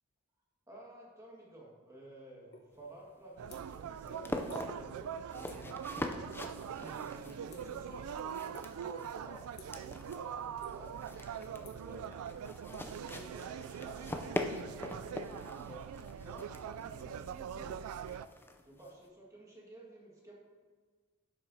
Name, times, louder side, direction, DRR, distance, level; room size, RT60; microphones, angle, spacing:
voice 1, 0.7-5.9 6.7-9.8 10.1-12.1 12.9-14.4 14.6-17.8 18.6-20.3, right 1 dB, 15° right, -3 dB, 1.7 m, -53 dB
sound 1, 2.5-2.7 3.0-3.9 4.2-4.6 4.9-5.2 5.4-5.8 6.1-6.6 6.9-8.0 8.5-8.9 9.5-9.9 10.3-11.0 11.3-13.5, left 3 dB, 50° left, 1.1 m, -56 dB
sound 2, 2.7-19.1, left 1 dB, 10° left, 0.4 m, -44 dB
sound 3, 3.4-18.3, right 8 dB, 80° right, 0.3 m, -43 dB
10.5 x 7.6 x 2.7 m, 1.4 s
head